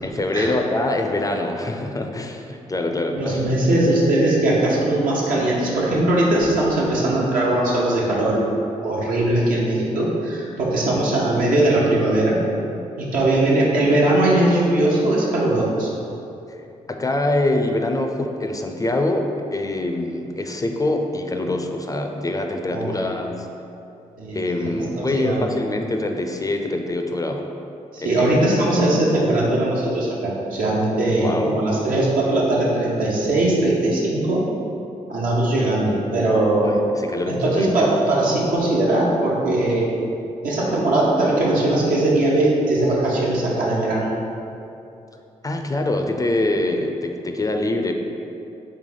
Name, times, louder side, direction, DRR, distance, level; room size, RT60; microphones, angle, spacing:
voice 1, 0.0-3.4 16.5-16.6 16.9-23.5 24.3-27.5 28.0-28.2 31.2-31.6 36.6-37.9 45.4-47.9, left 2 dB, 25° left, 4 dB, 0.4 m, -24 dB
voice 2, 3.1-8.4 8.8-12.4 13.0-15.9 22.7-23.0 24.2-24.4 24.6-25.4 27.9-34.4 35.1-36.8 37.3-39.9 40.4-44.1, right 1 dB, 80° right, -5 dB, 0.9 m, -20 dB
3.5 x 3.2 x 3.9 m, 2.7 s
supercardioid pair, 50°, 14 cm